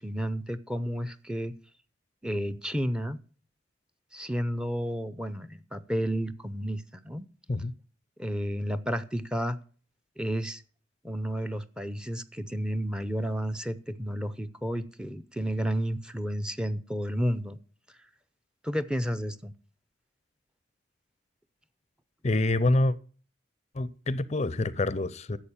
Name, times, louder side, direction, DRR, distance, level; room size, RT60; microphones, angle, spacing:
voice 1, 0.0-1.5 2.2-3.2 4.1-7.3 8.2-9.6 10.2-10.6 11.0-17.6 18.6-19.5, equal, 5° right, 0.6 m, -31 dB
voice 2, 22.2-22.9 23.8-25.4, left 2 dB, 35° left, 0.5 m, -26 dB
11.0 x 7.5 x 7.1 m
head